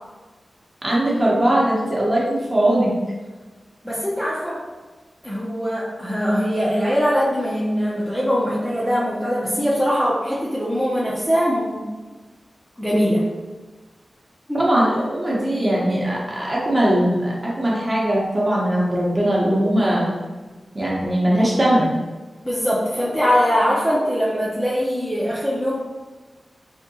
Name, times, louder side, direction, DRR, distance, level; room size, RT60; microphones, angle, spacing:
voice 1, 0.8-2.9 14.5-20.1 20.7-22.0, right 1 dB, 25° right, -5 dB, 0.8 m, -20 dB
voice 2, 3.8-4.6 5.2-11.9 12.8-13.3 14.5-14.7 22.4-25.8, equal, ahead, -7 dB, 0.4 m, -22 dB
3.6 x 2.7 x 2.6 m, 1.3 s
wide cardioid pair, 140°, 0 cm